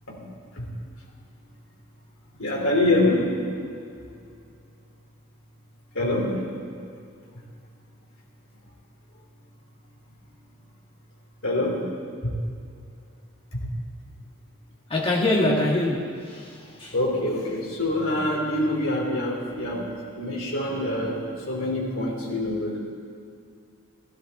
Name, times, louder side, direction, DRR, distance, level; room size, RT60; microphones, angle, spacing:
voice 1, 2.4-3.3 5.9-6.4 11.4-11.8 12.2-12.3 16.9-21.2 21.5-22.8, left 1 dB, 70° left, -2 dB, 3.2 m, -25 dB
voice 2, 14.9-16.9, left 1 dB, 25° left, -2 dB, 1.8 m, -24 dB
16.0 x 14.0 x 4.2 m, 2.3 s
head